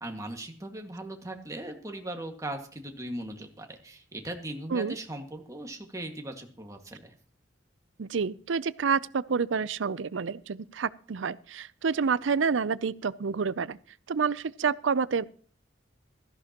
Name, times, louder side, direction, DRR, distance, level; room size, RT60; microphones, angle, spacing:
voice 1, 0.0-7.1, right 1 dB, 15° right, 1.9 m, -39 dB
voice 2, 8.0-13.8 14.1-15.2, right 5 dB, 80° right, 0.5 m, -28 dB
16.5 x 14.0 x 3.0 m
head